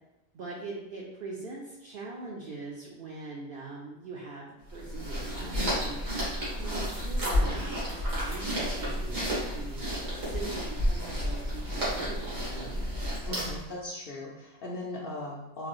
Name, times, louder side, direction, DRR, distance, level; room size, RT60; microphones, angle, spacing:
voice 1, 0.3-6.0 6.5-9.8 10.2-12.8, right 3 dB, 60° right, -3 dB, 0.6 m, -42 dB
sound 1, 4.7-13.7, equal, 80° right, 1.7 m, -31 dB
voice 2, 13.3-15.7, left 1 dB, 60° left, -3 dB, 0.6 m, -38 dB
3.9 x 2.6 x 3.0 m, 0.99 s
omnidirectional pair, 1.3 m